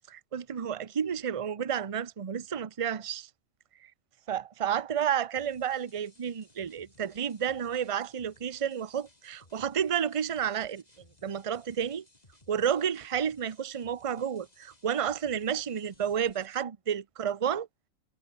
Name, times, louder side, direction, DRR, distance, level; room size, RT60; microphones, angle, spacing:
voice 1, 0.1-3.3 4.3-10.8 11.2-12.0 12.5-17.7, right 8 dB, 30° right, 0.7 m, -31 dB
sound 1, 5.3-16.6, left 1 dB, 30° left, 4.3 m, -62 dB
omnidirectional pair, 1.4 m